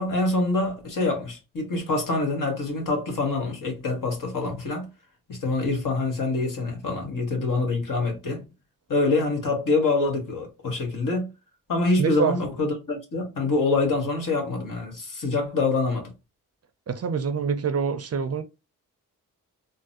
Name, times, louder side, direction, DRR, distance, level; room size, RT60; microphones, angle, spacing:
voice 1, 0.0-4.9 5.3-8.4 8.9-11.3 11.7-16.1, left 3 dB, 55° left, 1.5 m, -25 dB
voice 2, 12.0-12.4 16.9-18.4, right 6 dB, 40° right, 0.5 m, -25 dB
3.8 x 2.0 x 2.6 m
supercardioid pair, 45°, 37 cm